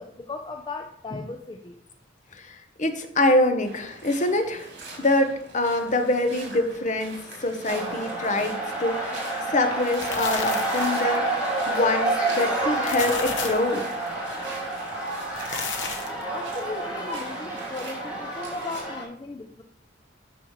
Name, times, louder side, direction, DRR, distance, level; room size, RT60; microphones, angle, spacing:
voice 1, 0.0-1.7 16.3-19.6, left 3 dB, 25° left, 4 dB, 0.4 m, -37 dB
voice 2, 2.3-4.7 5.0-13.9, left 2 dB, 40° left, 6 dB, 0.9 m, -25 dB
sound 1, 3.6-18.8, right 2 dB, 65° right, 3.4 m, -43 dB
sound 2, 7.7-19.0, right 2 dB, 10° right, 2.2 m, -29 dB
sound 3, 9.7-11.2 12.6-13.7 15.2-16.2, left 5 dB, 80° left, 1.0 m, -33 dB
10.0 x 6.2 x 3.1 m, 0.72 s
head